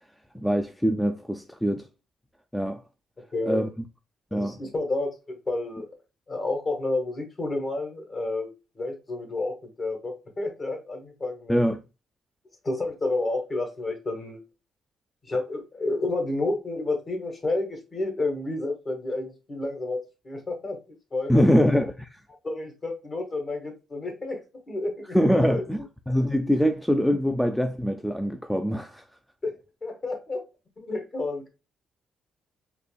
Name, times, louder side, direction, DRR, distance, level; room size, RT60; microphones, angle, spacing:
voice 1, 0.3-1.9 2.5-2.8 3.5-3.7 4.3-4.6 11.5-11.8 21.3-21.9 25.1-29.0, equal, 5° left, 0.4 m, -23 dB
voice 2, 3.3-3.6 4.3-5.9 6.3-11.6 12.6-14.4 15.3-20.0 20.2-20.8 21.1-21.7 22.4-24.4 24.7-25.6 29.4-29.5 29.8-30.4 30.8-31.5, left 2 dB, 40° left, 1.6 m, -30 dB
4.2 x 2.9 x 2.2 m
cardioid pair, 90°, 0 cm